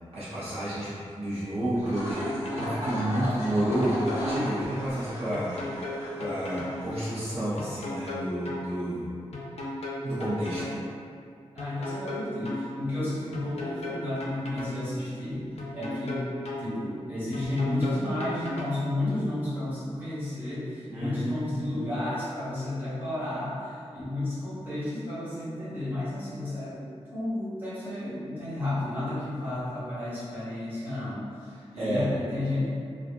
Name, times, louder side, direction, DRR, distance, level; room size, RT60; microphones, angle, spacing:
voice 1, 0.1-5.6 6.2-9.1 10.0-10.7 20.9-21.6 31.6-32.1, right 1 dB, 65° right, -11 dB, 0.7 m, -30 dB
sound 1, 1.7-7.5, equal, 85° right, 0.9 m, -36 dB
sound 2, 2.2-2.8 3.6-4.6 5.3-6.8 7.6-8.6 9.3-10.8 11.6-12.6 13.3-14.8 15.6-16.6 17.3-18.8, left 2 dB, 70° left, 0.5 m, -35 dB
voice 2, 11.5-15.5 15.7-16.3 16.6-26.8 27.1-32.7, left 1 dB, 15° right, -12 dB, 1.1 m, -32 dB
2.3 x 2.3 x 2.5 m, 2.4 s
wide cardioid pair, 90°, 11 cm